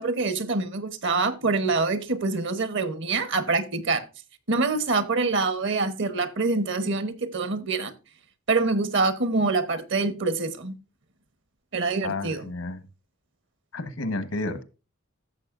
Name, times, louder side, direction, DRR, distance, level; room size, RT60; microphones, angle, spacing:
voice 1, 0.0-4.0 4.5-7.9 8.5-10.8 11.7-12.4, right 3 dB, 60° right, 1.0 m, -25 dB
voice 2, 12.0-12.8 13.7-14.6, left 2 dB, 85° left, 1.2 m, -31 dB
14.0 x 7.1 x 2.5 m
head